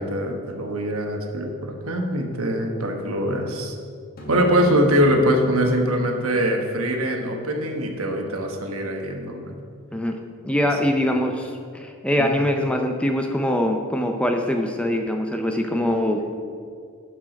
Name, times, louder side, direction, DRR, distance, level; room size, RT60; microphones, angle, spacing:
voice 1, 0.0-3.7 4.3-9.5 12.2-12.3, equal, 70° right, 2 dB, 1.2 m, -23 dB
sound 1, 4.2-8.8, equal, 40° left, 1.5 m, -36 dB
voice 2, 10.4-16.4, left 1 dB, 5° left, 3 dB, 0.4 m, -23 dB
11.5 x 4.8 x 5.1 m, 2.2 s
head